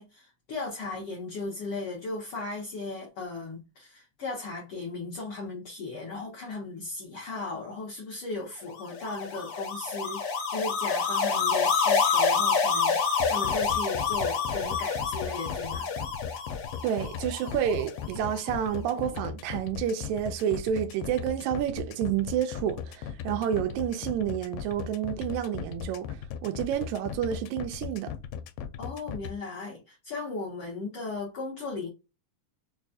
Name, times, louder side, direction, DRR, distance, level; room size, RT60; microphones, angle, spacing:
voice 1, 0.0-15.9 28.8-31.9, left 3 dB, 70° left, 1.4 m, -37 dB
sound 1, 8.8-18.1, left 5 dB, 50° left, 1.8 m, -28 dB
sound 2, 13.2-29.3, left 8 dB, 85° left, 2.2 m, -37 dB
voice 2, 16.8-26.1 26.4-28.1, right 9 dB, 85° right, 1.6 m, -29 dB
5.2 x 2.3 x 2.6 m
omnidirectional pair, 3.9 m